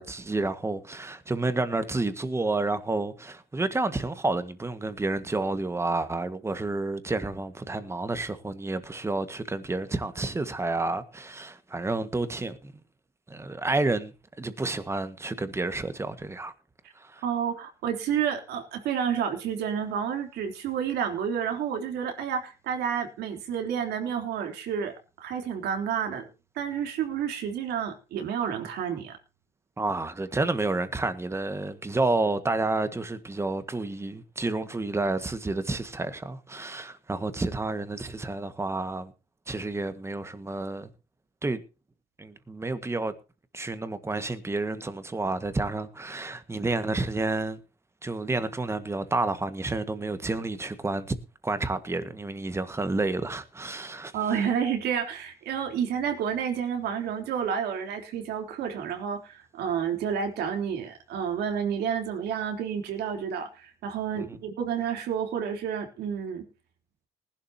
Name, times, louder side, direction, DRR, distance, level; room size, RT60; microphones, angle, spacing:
voice 1, 0.0-12.7 13.3-16.5 16.9-17.2 29.8-39.1 39.5-40.9 41.4-41.6 42.2-43.1 43.5-47.6 48.0-51.2 51.4-54.1 64.1-64.4, right 2 dB, 15° right, 1.7 m, -30 dB
voice 2, 17.2-24.9 25.2-26.3 26.6-29.2 54.1-66.4, right 8 dB, 75° right, 3.6 m, -30 dB
19.5 x 11.5 x 2.9 m
cardioid pair, 110°, 17 cm